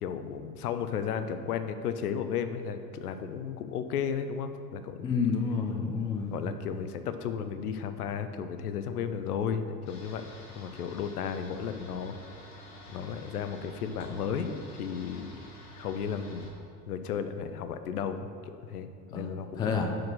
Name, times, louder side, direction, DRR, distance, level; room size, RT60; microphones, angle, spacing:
voice 1, 0.0-5.2 6.3-10.2 10.6-12.2 12.9-15.3 15.8-16.5 16.9-19.7, left 7 dB, 70° left, 10 dB, 0.6 m, -34 dB
voice 2, 5.0-6.4 19.1-19.2 19.5-20.0, left 5 dB, 10° left, 3 dB, 0.3 m, -29 dB
sound 1, 9.9-16.5, equal, 35° left, 1.3 m, -48 dB
5.9 x 4.8 x 6.0 m, 2.3 s
figure-of-eight pair, 75°, 47 cm